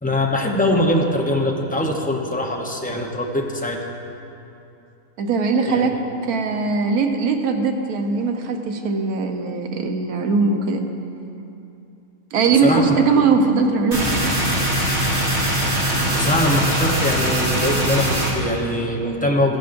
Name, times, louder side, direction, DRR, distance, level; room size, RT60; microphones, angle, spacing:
voice 1, 0.0-3.9 5.7-5.9 12.5-13.0 16.1-19.6, left 1 dB, 10° left, 0 dB, 0.5 m, -22 dB
voice 2, 5.2-5.9 6.2-10.9 12.3-14.4, right 4 dB, 85° right, 4 dB, 1.3 m, -20 dB
sound 1, 13.9-18.3, right 1 dB, 50° right, 2.6 m, -21 dB
15.0 x 10.0 x 2.6 m, 2.8 s
omnidirectional pair, 1.5 m